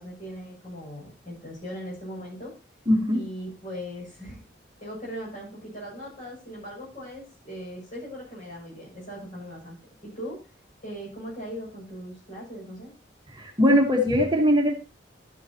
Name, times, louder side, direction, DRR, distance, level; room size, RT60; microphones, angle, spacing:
voice 1, 0.0-2.5 3.1-4.4 4.8-9.8 10.0-10.4 10.8-12.9, equal, 45° left, -3 dB, 6.8 m, -39 dB
voice 2, 2.9-3.2 13.3-14.7, equal, 25° right, 1 dB, 1.3 m, -20 dB
12.5 x 9.6 x 2.9 m, 0.31 s
head